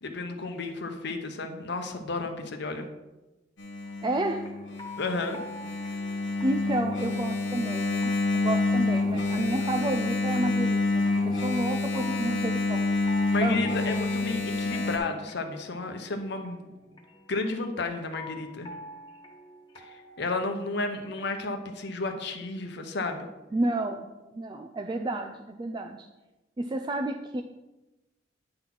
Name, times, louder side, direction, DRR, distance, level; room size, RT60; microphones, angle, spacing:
voice 1, 0.0-2.9 5.0-5.4 13.3-16.7 17.3-18.7 19.8-23.3, left 3 dB, 65° left, 6 dB, 0.9 m, -32 dB
Engine, 3.6-15.0, left 3 dB, 90° left, 1.8 m, -28 dB
sound 1, 3.8-21.5, left 1 dB, 25° left, 1.3 m, -48 dB
voice 2, 4.0-4.5 6.4-12.8 13.4-13.6 23.5-24.1 24.3-26.1 26.6-27.4, right 2 dB, 25° right, 4 dB, 0.4 m, -30 dB
9.7 x 4.0 x 5.9 m, 1.0 s
head